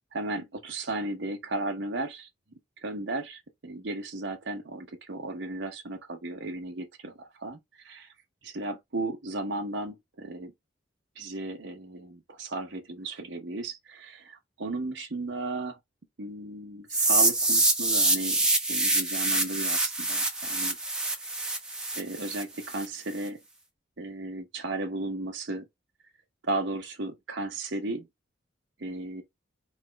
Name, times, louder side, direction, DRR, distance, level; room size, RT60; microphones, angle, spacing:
voice 1, 0.1-2.3 2.8-8.1 8.4-10.5 11.2-15.8 16.2-18.4 18.7-20.8 21.9-23.4 24.0-25.7 26.4-28.1 28.8-29.2, right 2 dB, 70° right, 0.9 m, -35 dB
sound 1, 16.9-22.9, right 2 dB, 5° right, 0.9 m, -25 dB
3.9 x 3.2 x 3.3 m
head